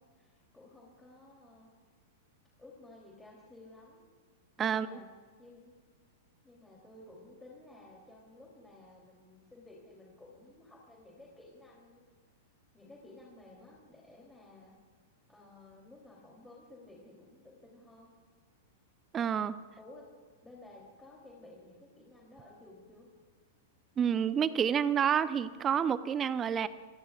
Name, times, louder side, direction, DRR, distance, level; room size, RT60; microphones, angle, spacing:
voice 1, 0.2-1.7 2.6-4.0 4.6-5.1 5.4-5.7 6.4-12.0 12.7-14.7 15.3-18.1 19.8-20.1 20.4-23.1, left 2 dB, 10° left, -3 dB, 3.4 m, -54 dB
voice 2, 19.1-19.6 24.0-26.7, right 8 dB, 25° right, 14 dB, 0.8 m, -29 dB
29.0 x 17.5 x 2.5 m, 1.5 s
hypercardioid pair, 105°, 0 cm